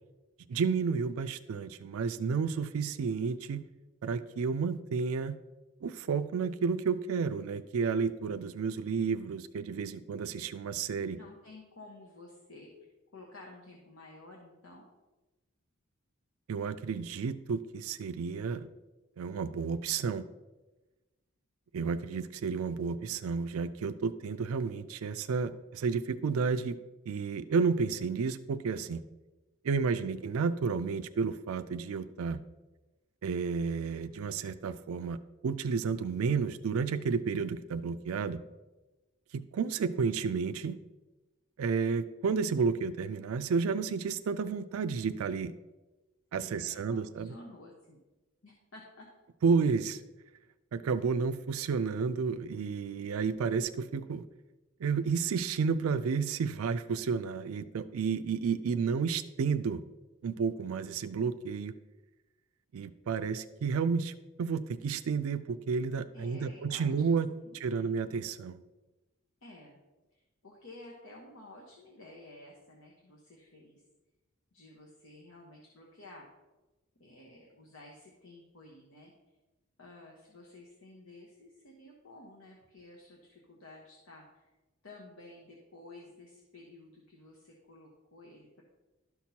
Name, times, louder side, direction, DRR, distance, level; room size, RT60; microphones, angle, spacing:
voice 1, 0.5-3.6 4.0-5.4 5.8-11.2 16.5-18.7 19.2-20.2 21.7-26.8 27.1-29.0 29.6-32.4 33.2-35.2 35.4-38.4 39.3-40.8 41.6-45.5 46.3-47.3 49.4-50.0 50.7-54.2 54.8-59.8 60.2-61.7 62.7-64.1 64.4-67.3 67.5-68.6, right 5 dB, 90° right, 10 dB, 0.4 m, -31 dB
voice 2, 11.1-12.9 13.1-14.9 46.4-48.0 48.4-49.1 66.1-66.9 67.4-67.9 69.4-69.8 70.1-73.8 74.5-76.3 77.0-79.1 79.8-84.5 84.8-88.6, left 2 dB, 75° left, -2 dB, 1.1 m, -52 dB
12.0 x 6.0 x 2.8 m, 1.1 s
head